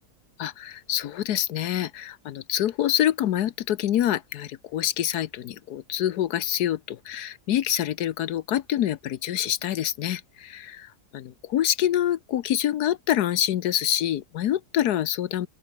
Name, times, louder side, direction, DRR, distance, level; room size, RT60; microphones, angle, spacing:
voice 1, 0.4-15.5, left 11 dB, 85° left, 1.4 m, -26 dB
open air
omnidirectional pair, 1.7 m